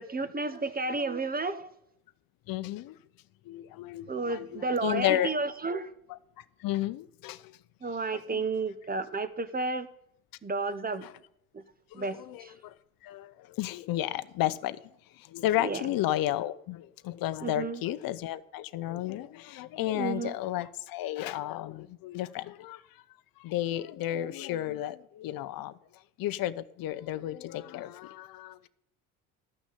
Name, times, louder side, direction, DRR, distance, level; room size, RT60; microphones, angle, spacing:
voice 1, 0.0-1.7 4.1-5.9 7.8-9.9 10.4-11.1 11.9-12.5 15.6-15.8 17.4-17.8 19.9-20.3, right 3 dB, 20° right, 1.2 m, -32 dB
voice 2, 2.5-3.0 3.4-5.3 6.1-7.6 7.9-8.4 11.0-11.2 11.9-12.7 13.0-14.8 15.1-23.0 23.4-28.7, left 14 dB, 50° left, 0.8 m, -33 dB
13.0 x 6.2 x 8.6 m
hypercardioid pair, 70°, 45 cm